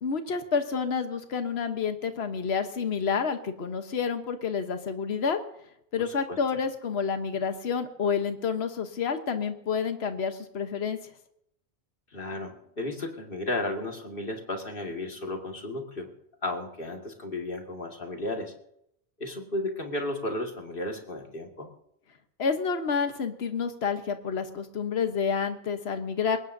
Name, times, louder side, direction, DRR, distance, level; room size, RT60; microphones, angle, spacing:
voice 1, 0.0-5.4 5.9-11.0 22.4-26.4, left 6 dB, 75° left, 7 dB, 1.3 m, -29 dB
voice 2, 6.0-6.4 12.1-16.1 16.4-18.5 19.2-21.7, left 2 dB, 55° left, 2 dB, 2.2 m, -34 dB
22.0 x 18.5 x 2.7 m, 0.76 s
omnidirectional pair, 1.1 m